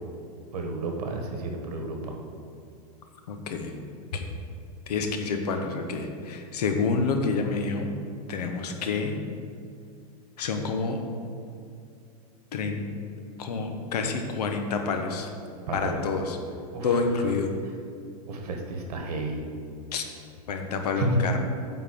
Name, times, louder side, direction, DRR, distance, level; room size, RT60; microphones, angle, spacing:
voice 1, 0.5-2.1 15.7-16.0 16.7-17.0 18.3-19.4 20.9-21.2, right 2 dB, 75° right, 2 dB, 1.6 m, -31 dB
voice 2, 3.3-3.8 4.1-4.2 4.9-7.9 8.3-9.2 10.4-11.0 12.5-12.8 13.4-15.3 15.7-16.4 16.8-17.5 19.9-20.0 20.5-21.4, left 4 dB, 85° left, 5 dB, 1.2 m, -28 dB
9.0 x 4.1 x 6.8 m, 2.4 s
supercardioid pair, 170°, 20 cm